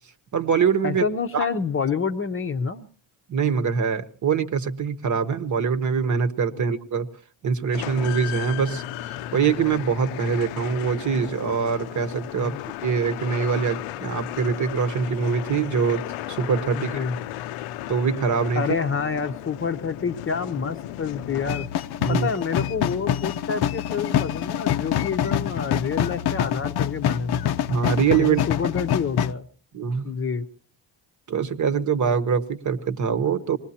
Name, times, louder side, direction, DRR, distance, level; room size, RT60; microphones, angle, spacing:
voice 1, 0.3-1.0 1.3-1.5 3.3-7.1 7.4-12.6 12.8-17.0 17.9-18.6 22.0-22.3 27.7-28.7 29.7-30.1 31.3-33.6, right 6 dB, 35° right, 9 dB, 1.1 m, -24 dB
voice 2, 0.8-2.9 12.4-12.6 16.7-17.2 18.6-21.7 22.1-27.4 28.2-29.5 30.0-30.5, left 5 dB, 25° left, 7 dB, 0.8 m, -28 dB
sound 1, 7.7-22.0, left 13 dB, 90° left, 0.7 m, -35 dB
sound 2, 21.5-29.3, left 10 dB, 55° left, 0.7 m, -26 dB
25.5 x 20.0 x 2.8 m, 0.42 s
cardioid pair, 170°, 49 cm